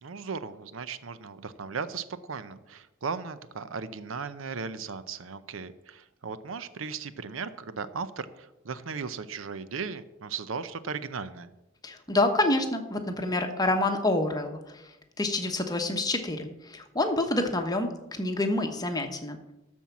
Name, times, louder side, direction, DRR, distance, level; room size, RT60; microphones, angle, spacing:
voice 1, 0.0-11.5, right 5 dB, 85° right, 13 dB, 0.6 m, -37 dB
voice 2, 11.8-14.8 15.2-19.4, left 2 dB, 20° left, 5 dB, 1.1 m, -27 dB
13.0 x 4.5 x 7.1 m, 0.95 s
head